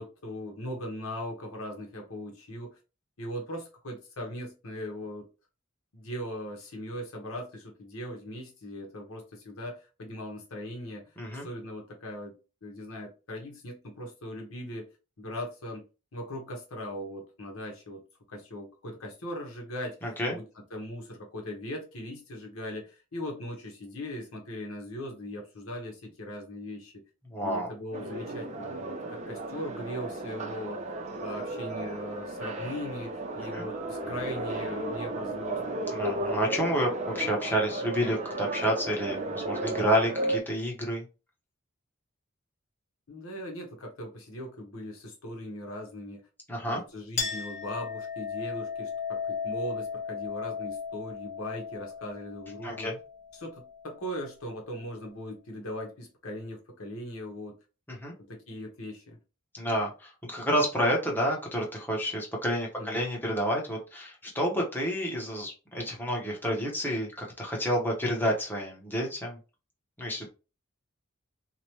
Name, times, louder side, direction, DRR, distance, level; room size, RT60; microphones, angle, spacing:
voice 1, 0.0-2.8 3.2-5.3 5.9-11.1 11.4-14.9 15.2-15.8 16.1-20.4 20.7-27.0 27.4-30.8 31.2-35.6 43.1-46.2 46.7-52.9 53.3-57.5 58.3-59.2 62.8-63.0, equal, 75° left, 1.0 m, -39 dB
voice 2, 11.2-11.5 20.0-20.4 27.3-27.7 33.5-33.7 35.9-41.0 46.5-46.8 52.6-53.0 57.9-58.1 59.5-69.4 70.0-70.3, equal, 10° left, 0.9 m, -29 dB
sound 1, 27.9-40.4, right 2 dB, 35° right, 0.5 m, -34 dB
Chink clink, 47.2-54.2, left 6 dB, 40° left, 0.7 m, -36 dB
2.9 x 2.2 x 3.0 m
head